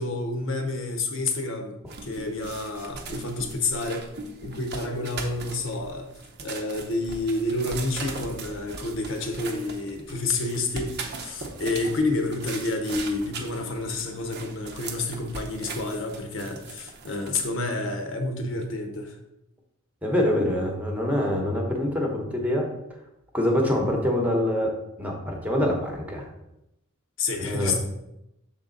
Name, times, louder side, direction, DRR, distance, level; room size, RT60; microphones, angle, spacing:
voice 1, 0.0-4.1 4.4-6.1 6.4-19.2 27.2-27.8, left 2 dB, 60° left, 4 dB, 0.8 m, -29 dB
sound 1, 1.9-17.5, right 4 dB, 50° right, 0.7 m, -39 dB
voice 2, 20.0-22.7 23.3-24.7 25.0-26.3 27.4-27.8, left 1 dB, 5° right, 0 dB, 0.9 m, -25 dB
6.7 x 3.8 x 3.8 m, 0.87 s
head